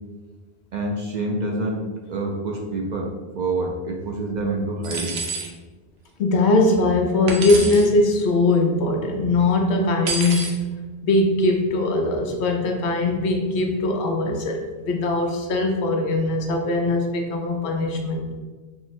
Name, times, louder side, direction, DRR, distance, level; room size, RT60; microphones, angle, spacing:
voice 1, 0.7-5.2, right 2 dB, 55° right, -1 dB, 0.5 m, -27 dB
sound 1, 4.8-5.5 7.3-7.9 10.1-10.6, right 4 dB, 80° right, 0.9 m, -28 dB
voice 2, 6.2-10.6 11.0-18.2, left 2 dB, 85° left, 2 dB, 0.9 m, -21 dB
3.8 x 2.0 x 4.2 m, 1.3 s
omnidirectional pair, 1.1 m